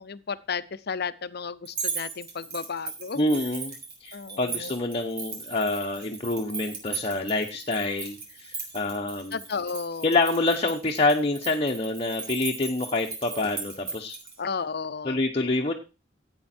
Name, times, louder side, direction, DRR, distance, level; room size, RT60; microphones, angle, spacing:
voice 1, 0.0-3.4 4.1-4.7 9.3-10.2 14.4-15.2, left 5 dB, 60° left, 15 dB, 0.7 m, -33 dB
sound 1, 1.7-14.3, right 5 dB, 60° right, 4.6 m, -38 dB
voice 2, 3.1-3.7 4.0-9.4 10.0-14.2 15.0-15.7, left 2 dB, 30° left, 2 dB, 1.0 m, -27 dB
13.0 x 8.8 x 4.4 m, 0.31 s
head